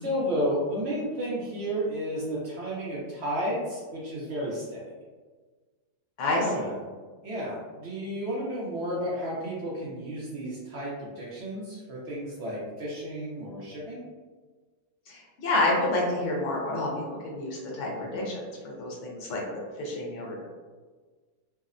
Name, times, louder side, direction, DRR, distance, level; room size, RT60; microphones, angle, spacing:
voice 1, 0.0-4.8 6.3-6.7 7.2-14.0 18.0-18.2, equal, 65° right, -6 dB, 0.7 m, -32 dB
voice 2, 15.1-20.4, left 2 dB, 70° left, -2 dB, 0.9 m, -29 dB
2.7 x 2.0 x 2.4 m, 1.4 s
omnidirectional pair, 1.5 m